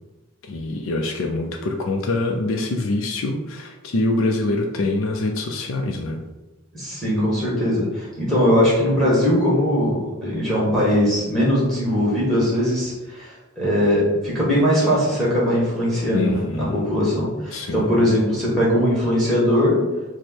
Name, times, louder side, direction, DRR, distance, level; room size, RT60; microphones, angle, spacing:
voice 1, 0.4-6.2 16.1-16.8 17.5-17.9, left 2 dB, 60° left, 2 dB, 0.4 m, -24 dB
voice 2, 6.7-19.8, equal, ahead, -6 dB, 1.3 m, -20 dB
4.6 x 2.1 x 4.3 m, 1.1 s
head